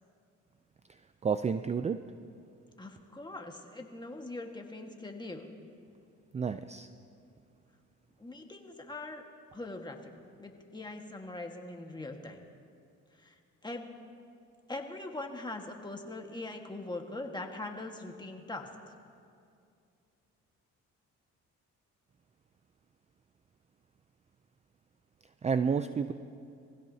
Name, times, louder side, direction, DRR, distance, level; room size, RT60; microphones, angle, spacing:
voice 1, 1.2-2.1 6.3-6.9 25.4-26.1, right 6 dB, 25° right, 11 dB, 0.4 m, -30 dB
voice 2, 2.8-5.5 8.2-9.2 9.5-10.1 10.4-12.4 13.1-13.9 14.7-18.9, left 2 dB, 15° left, 3 dB, 1.6 m, -42 dB
23.5 x 16.0 x 2.8 m, 2.4 s
cardioid pair, 90°, 30 cm